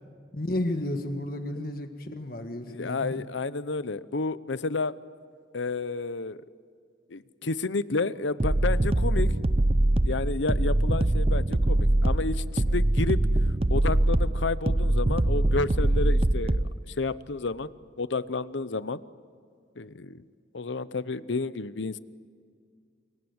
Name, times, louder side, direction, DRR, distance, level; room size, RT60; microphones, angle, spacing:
voice 1, 0.3-3.2, left 1 dB, 50° left, 6 dB, 1.7 m, -32 dB
voice 2, 2.7-4.9 5.5-6.4 7.1-9.3 10.0-13.2 13.7-17.7 18.0-19.0 19.8-20.2 20.5-22.0, left 3 dB, 85° left, 16 dB, 0.8 m, -31 dB
sound 1, 8.4-16.7, right 1 dB, 30° right, 0.6 m, -23 dB
29.0 x 23.5 x 8.0 m, 2.2 s
head